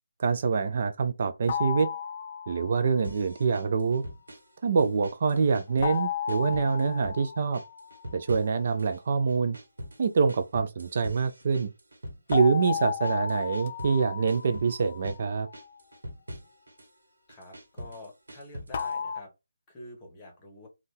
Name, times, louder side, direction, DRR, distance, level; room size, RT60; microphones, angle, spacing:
voice 1, 0.2-1.9 2.5-4.0 4.6-7.6 8.1-9.6 10.0-11.7 12.3-15.5, right 5 dB, 45° right, 0.4 m, -25 dB
sound 1, 1.5-3.0 5.8-8.3 12.3-15.5 18.7-19.2, left 7 dB, 40° left, 0.4 m, -34 dB
sound 2, 3.0-4.5 4.8-6.0 6.3-7.2 7.5-9.0 9.3-14.0 14.3-15.2 15.5-16.9 17.3-19.0, equal, 75° right, 1.1 m, -43 dB
voice 2, 17.3-19.3 19.7-20.7, left 2 dB, 20° left, 1.0 m, -47 dB
2.5 x 2.3 x 3.5 m
figure-of-eight pair, 155°, 0 cm